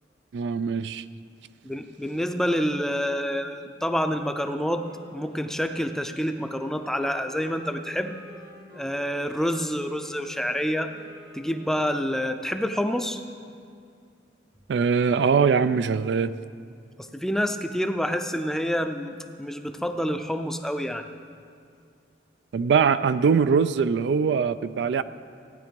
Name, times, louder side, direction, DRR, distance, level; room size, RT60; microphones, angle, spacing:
voice 1, 0.3-1.0 14.7-16.3 22.5-25.0, right 6 dB, 75° right, 14 dB, 0.3 m, -22 dB
voice 2, 1.6-4.8 5.1-8.1 8.7-10.9 11.3-13.2 17.0-21.1, equal, 5° left, 7 dB, 0.5 m, -28 dB
Wind instrument woodwind instrument, 4.8-12.4, equal, 55° right, 1.7 m, -52 dB
15.5 x 9.4 x 5.2 m, 2.3 s
head